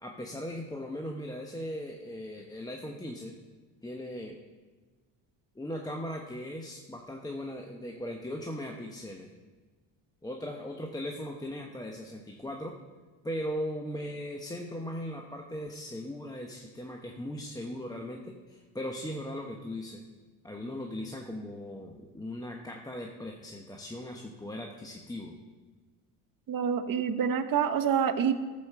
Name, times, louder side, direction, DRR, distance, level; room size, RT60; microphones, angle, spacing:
voice 1, 0.0-3.3 3.8-4.4 5.5-9.3 10.2-12.7 13.2-20.0 20.4-25.3, left 1 dB, 10° left, 0 dB, 1.1 m, -38 dB
voice 2, 26.5-28.3, right 7 dB, 45° right, 7 dB, 1.1 m, -27 dB
14.0 x 5.3 x 6.8 m, 1.3 s
supercardioid pair, 80°, 48 cm